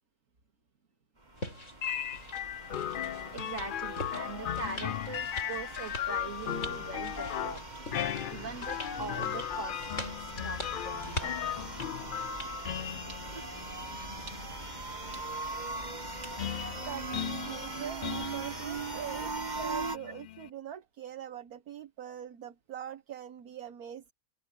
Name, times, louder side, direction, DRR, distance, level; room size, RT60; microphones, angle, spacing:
sound 1, 1.2-20.0, right 3 dB, 30° right, 2.2 m, -41 dB
sound 2, 1.4-12.5, left 1 dB, 55° left, 6.2 m, -44 dB
sound 3, 1.8-20.5, left 10 dB, 80° left, 0.4 m, -37 dB
voice 1, 3.3-7.6 8.3-11.5 13.1-13.2 14.3-14.4 14.7-14.8 15.1-15.2 16.2-16.3, right 4 dB, 55° right, 3.2 m, -42 dB
voice 2, 16.7-24.1, right 9 dB, 80° right, 1.6 m, -43 dB
omnidirectional pair, 1.6 m